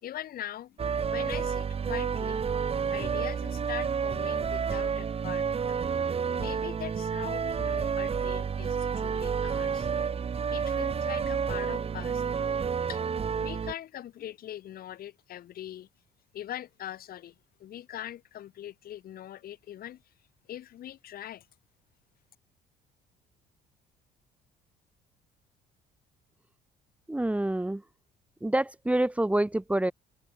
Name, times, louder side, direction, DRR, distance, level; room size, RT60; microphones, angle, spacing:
voice 1, 0.0-0.8 1.1-2.4 2.9-5.8 6.4-9.9 10.5-12.2 12.9-13.0 13.4-15.9 16.3-17.3 17.6-20.0 20.5-21.5, left 11 dB, 60° left, 4.6 m, -42 dB
sound 1, 0.8-13.7, right 6 dB, 35° right, 3.9 m, -30 dB
voice 2, 27.1-27.8 28.4-29.9, right 1 dB, 10° right, 1.9 m, -27 dB
cardioid pair, 110°, 17 cm